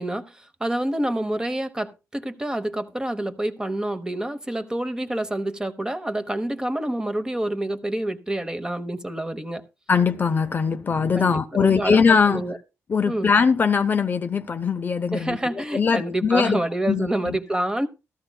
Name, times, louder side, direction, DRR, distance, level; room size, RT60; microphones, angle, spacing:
voice 1, 0.0-9.6 11.1-12.6 13.1-13.3 15.1-17.9, right 1 dB, 10° right, 0.9 m, -27 dB
voice 2, 9.9-12.4 12.9-16.6 16.9-17.4, left 5 dB, 35° left, 0.5 m, -21 dB
14.0 x 14.0 x 2.2 m
cardioid pair, 130°, 6 cm